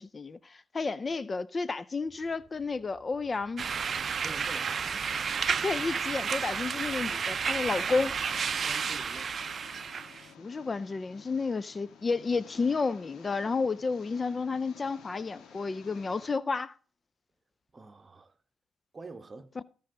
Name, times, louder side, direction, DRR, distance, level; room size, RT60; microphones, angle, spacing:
voice 1, 0.0-3.6 5.6-8.2 10.4-16.7 19.6-19.7, left 4 dB, 35° left, 0.4 m, -31 dB
sound 1, 2.0-8.2, right 1 dB, 10° right, 6.2 m, -60 dB
sound 2, 3.6-10.2, right 6 dB, 50° right, 0.5 m, -31 dB
voice 2, 4.2-4.9 8.6-9.3 17.7-18.3 18.9-19.5, right 3 dB, 35° right, 1.2 m, -46 dB
Engine, 7.6-16.3, left 7 dB, 70° left, 1.5 m, -53 dB
15.0 x 5.5 x 3.8 m
supercardioid pair, 65°, 0 cm